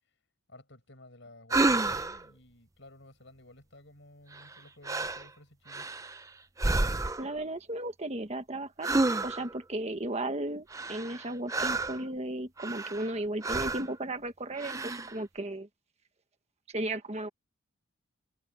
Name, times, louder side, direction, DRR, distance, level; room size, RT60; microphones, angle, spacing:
voice 1, 0.5-5.9, left 1 dB, 60° left, 7.8 m, -54 dB
sound 1, 1.5-2.2 4.3-4.6 4.8-5.3 5.7-6.2 6.6-7.3 8.8-9.6 10.7-12.0 12.6-13.1 13.4-13.9 14.6-15.1, right 2 dB, 15° right, 0.6 m, -30 dB
voice 2, 7.2-8.9 9.2-15.7 16.7-17.3, right 1 dB, 30° right, 1.4 m, -35 dB
head